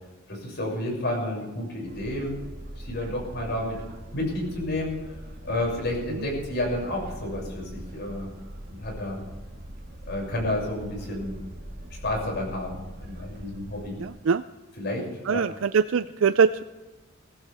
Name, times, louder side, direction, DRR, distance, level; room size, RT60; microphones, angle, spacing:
voice 1, 0.3-2.3 2.8-3.8 4.1-5.0 5.4-8.3 8.7-9.2 10.0-11.4 12.0-12.7 13.0-14.0 14.8-15.4, left 1 dB, 55° left, -1 dB, 6.9 m, -30 dB
sound 1, 1.9-14.2, right 1 dB, 50° right, 2.1 m, -42 dB
voice 2, 14.0-14.4 15.3-16.6, right 6 dB, 70° right, 11 dB, 0.4 m, -23 dB
22.0 x 15.5 x 3.6 m, 1.2 s
head